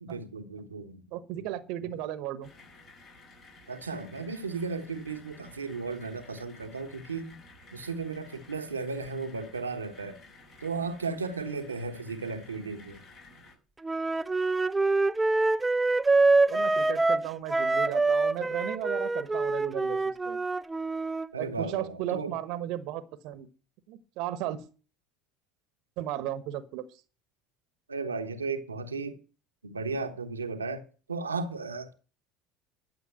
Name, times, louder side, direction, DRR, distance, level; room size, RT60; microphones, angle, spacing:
voice 1, 0.0-1.0 1.4-1.5 1.8-1.9 3.7-7.4 7.7-10.2 10.6-13.0 21.3-22.4 27.9-29.2 29.6-31.9, right 4 dB, 90° right, 1.2 m, -35 dB
voice 2, 1.1-2.5 16.5-20.4 21.4-23.5 23.9-24.7 26.0-27.0, right 12 dB, 60° right, 1.1 m, -35 dB
sound 1, 2.4-13.6, left 2 dB, 50° left, 5.6 m, -53 dB
Wind instrument woodwind instrument, 13.8-21.3, right 3 dB, 15° right, 0.6 m, -25 dB
12.0 x 6.8 x 9.1 m
figure-of-eight pair, 65°, 0 cm